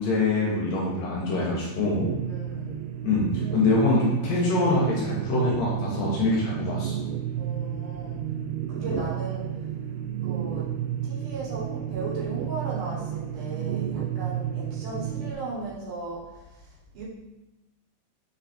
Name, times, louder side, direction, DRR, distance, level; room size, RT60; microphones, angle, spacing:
voice 1, 0.0-2.1 3.0-7.0 8.8-9.0, left 2 dB, 70° left, -4 dB, 2.5 m, -24 dB
sound 1, 2.0-15.3, right 10 dB, 80° right, 2.3 m, -31 dB
voice 2, 2.3-2.8 7.4-8.2 8.7-9.7 10.2-10.7 11.0-17.0, right 3 dB, 65° right, -5 dB, 2.5 m, -37 dB
6.5 x 4.0 x 4.2 m, 1.1 s
omnidirectional pair, 4.6 m